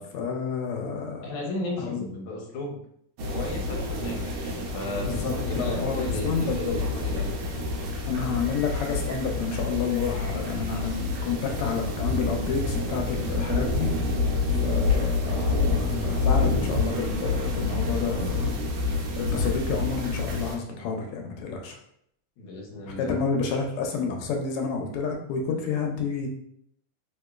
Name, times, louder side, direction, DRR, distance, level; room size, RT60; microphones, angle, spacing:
voice 1, 0.1-1.2 1.8-2.0 5.0-7.1 8.1-13.9 14.6-18.5 18.9-21.8 22.9-26.3, left 5 dB, 90° left, 2 dB, 1.5 m, -30 dB
voice 2, 1.2-2.8 3.3-7.3 14.5-14.8 22.4-23.2 23.5-23.6, left 2 dB, 70° left, 0 dB, 1.4 m, -35 dB
sound 1, 3.2-20.6, left 3 dB, 75° right, 1.3 m, -28 dB
3.4 x 2.9 x 2.3 m, 0.70 s
omnidirectional pair, 2.4 m